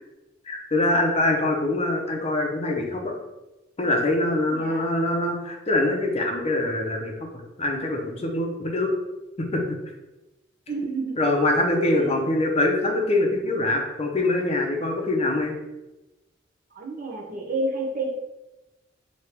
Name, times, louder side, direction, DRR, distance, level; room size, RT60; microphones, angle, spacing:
voice 1, 0.5-3.1 3.8-7.3 7.6-8.9 9.4-9.8 11.2-15.6, left 2 dB, 35° left, 1 dB, 0.7 m, -24 dB
voice 2, 4.5-4.9 10.7-11.5 11.9-12.2 16.7-18.1, right 2 dB, 50° right, -2 dB, 1.0 m, -30 dB
3.4 x 2.9 x 4.4 m, 1.0 s
head